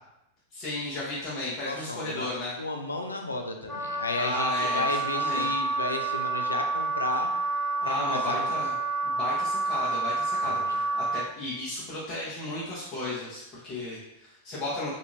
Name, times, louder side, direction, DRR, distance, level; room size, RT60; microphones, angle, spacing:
voice 1, 0.5-2.5 4.1-5.4 7.8-8.7 9.0-14.9, left 2 dB, 30° left, -8 dB, 0.8 m, -34 dB
voice 2, 1.6-2.3 2.6-7.3 7.8-8.6 10.4-10.8, left 2 dB, 80° left, 3 dB, 0.4 m, -33 dB
Wind instrument woodwind instrument, 3.7-11.2, right 3 dB, 5° left, 1.0 m, -29 dB
2.8 x 2.5 x 2.5 m, 0.84 s
figure-of-eight pair, 90°, 0 cm